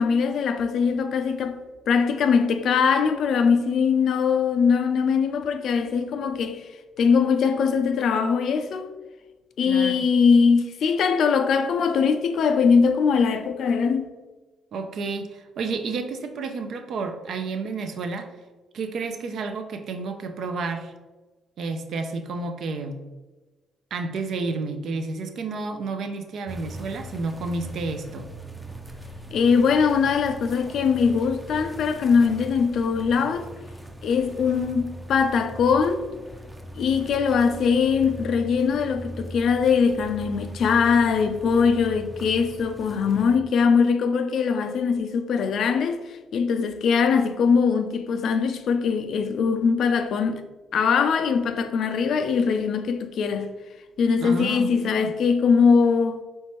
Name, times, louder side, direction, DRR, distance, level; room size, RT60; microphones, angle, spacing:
voice 1, 0.0-1.6 1.9-6.7 7.0-8.9 9.6-14.1 29.3-33.5 34.0-36.0 36.8-50.4 50.7-53.5 54.0-56.2, left 5 dB, 70° left, 0.4 m, -21 dB
voice 2, 9.6-10.1 14.7-18.3 18.7-20.9 21.6-23.0 23.9-28.3 54.2-55.1, right 3 dB, 65° right, 0.4 m, -31 dB
sound 1, 26.5-43.4, right 1 dB, 10° right, 0.5 m, -40 dB
4.4 x 3.2 x 3.0 m
cardioid pair, 90°, 0 cm